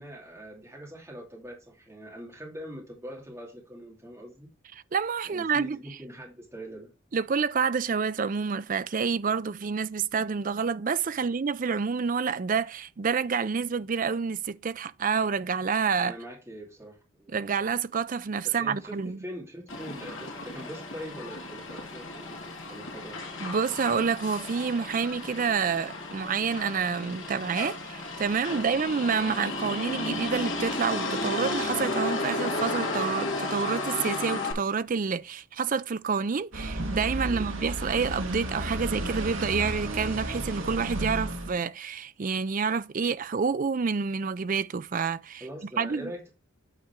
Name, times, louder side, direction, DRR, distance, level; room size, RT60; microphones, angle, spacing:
voice 1, 0.0-4.5 5.2-6.9 11.2-11.3 16.0-17.6 18.4-23.2 28.5-28.8 37.2-37.5 45.4-46.3, equal, 10° right, 2.5 m, -43 dB
voice 2, 4.9-5.8 7.1-16.1 17.3-19.2 23.4-45.4 45.8-46.1, right 5 dB, 40° right, 0.4 m, -28 dB
Motor vehicle (road), 19.7-34.5, left 2 dB, 60° left, 2.6 m, -33 dB
sound 1, 36.5-41.6, right 1 dB, 65° right, 1.8 m, -33 dB
8.9 x 4.9 x 4.4 m
head